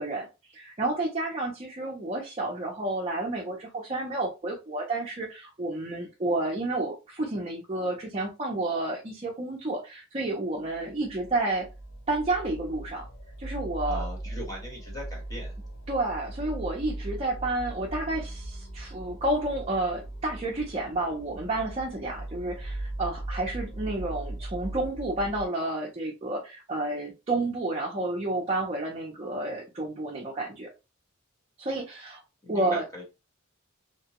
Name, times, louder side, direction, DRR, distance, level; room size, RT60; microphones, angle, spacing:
voice 1, 0.0-11.7 12.1-13.1 13.4-14.1 15.9-30.7 31.6-32.2 32.5-32.8, right 2 dB, 30° right, -2 dB, 0.6 m, -30 dB
sound 1, 10.7-25.5, right 1 dB, 65° left, 0.8 m, -39 dB
voice 2, 13.8-15.5 32.4-33.0, equal, 15° left, -2 dB, 1.2 m, -39 dB
2.9 x 2.2 x 2.9 m, 0.28 s
head